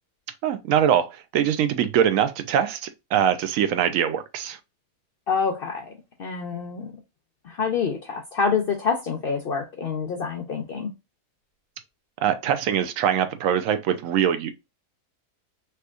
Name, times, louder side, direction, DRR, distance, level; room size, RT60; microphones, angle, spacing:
voice 1, 0.4-4.6 12.2-14.5, right 9 dB, 70° right, 0.8 m, -23 dB
voice 2, 5.3-5.9 6.2-6.9 7.4-10.9, left 5 dB, 75° left, 0.5 m, -27 dB
3.3 x 2.8 x 2.3 m
omnidirectional pair, 1.7 m